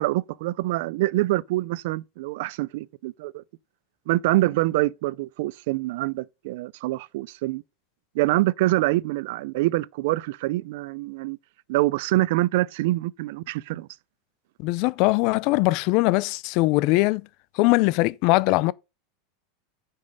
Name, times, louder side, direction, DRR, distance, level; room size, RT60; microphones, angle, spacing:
voice 1, 0.0-3.4 4.1-7.6 8.1-11.4 11.7-13.9, right 18 dB, 55° right, 0.4 m, -25 dB
voice 2, 14.6-17.3 17.6-18.7, left 21 dB, 45° left, 0.4 m, -21 dB
9.3 x 5.3 x 5.2 m
supercardioid pair, 170°, 0 cm